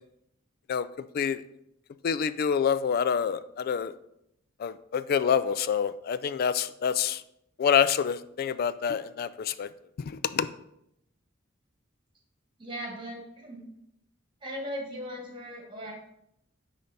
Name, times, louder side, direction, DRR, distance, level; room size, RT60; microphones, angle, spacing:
voice 1, 2.0-3.9 4.6-7.2 7.6-9.7 10.0-10.5, left 7 dB, 50° left, 15 dB, 0.3 m, -27 dB
voice 2, 12.6-13.6 14.4-15.9, equal, 25° right, 0 dB, 1.6 m, -38 dB
9.5 x 3.3 x 4.0 m, 0.79 s
head